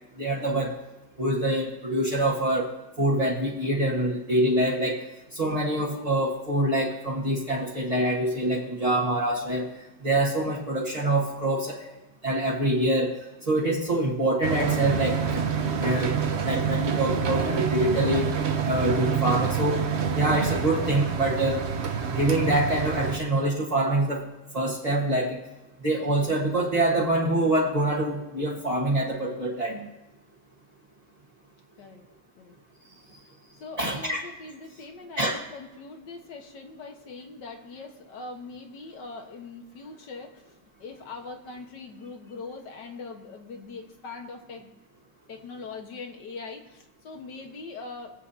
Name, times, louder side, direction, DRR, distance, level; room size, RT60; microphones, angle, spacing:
voice 1, 0.2-0.8 1.2-2.7 3.0-5.0 5.3-9.7 10.0-11.9 12.2-13.1 13.5-15.5 15.8-18.3 18.6-19.8 20.1-21.6 22.1-24.2 24.5-25.4 25.8-29.9 33.8-34.2 35.2-35.4, right 1 dB, 25° right, -4 dB, 1.5 m, -25 dB
sound 1, 14.4-23.2, right 6 dB, 50° right, 0.9 m, -27 dB
voice 2, 33.6-44.7 45.3-48.1, left 3 dB, 85° left, 3 dB, 2.0 m, -42 dB
24.0 x 8.2 x 2.8 m, 1.0 s
omnidirectional pair, 1.8 m